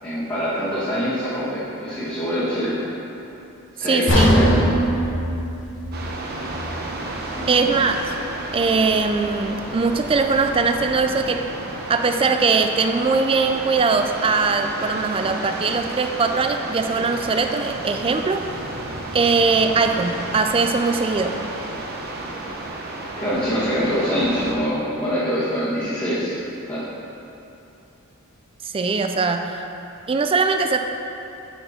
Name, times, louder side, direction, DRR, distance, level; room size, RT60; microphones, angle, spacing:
voice 1, 0.0-2.7 3.7-4.6 7.3-7.9 23.2-26.3 26.7-26.8, equal, 25° left, -12 dB, 1.4 m, -24 dB
voice 2, 3.9-4.4 7.5-8.0 8.5-11.4 11.9-18.4 19.1-21.4 28.6-29.6 30.1-30.8, right 4 dB, 25° right, 6 dB, 0.3 m, -21 dB
sound 1, 4.1-8.1 8.5-8.7 9.2-9.3, equal, 60° left, 1.1 m, -22 dB
sound 2, 5.9-24.6, right 2 dB, 50° right, 0.8 m, -32 dB
9.1 x 4.3 x 4.3 m, 2.9 s
head